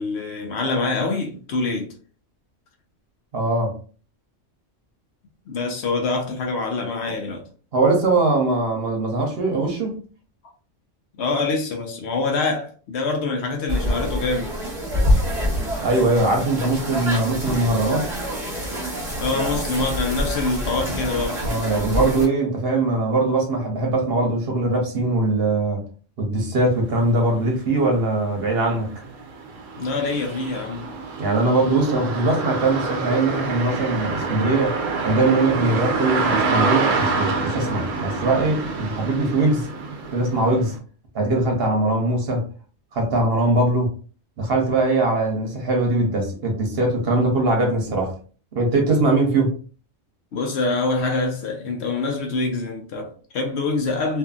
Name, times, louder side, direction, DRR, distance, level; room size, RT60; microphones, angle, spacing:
voice 1, 0.0-1.9 5.5-7.5 11.2-14.5 19.2-21.4 29.8-30.9 50.3-54.2, left 3 dB, 65° left, 0.8 m, -25 dB
voice 2, 3.3-3.7 7.7-10.0 15.8-18.1 21.4-25.8 26.2-28.9 31.2-34.8 35.0-39.7 40.1-40.7 41.1-42.5 42.9-43.9 44.4-48.1 48.5-49.5, right 2 dB, 55° right, 0.9 m, -21 dB
sound 1, 13.7-22.3, equal, 30° right, 0.9 m, -26 dB
sound 2, 27.4-27.5 27.9-40.8, right 4 dB, 85° right, 1.0 m, -27 dB
2.6 x 2.6 x 2.3 m
omnidirectional pair, 1.3 m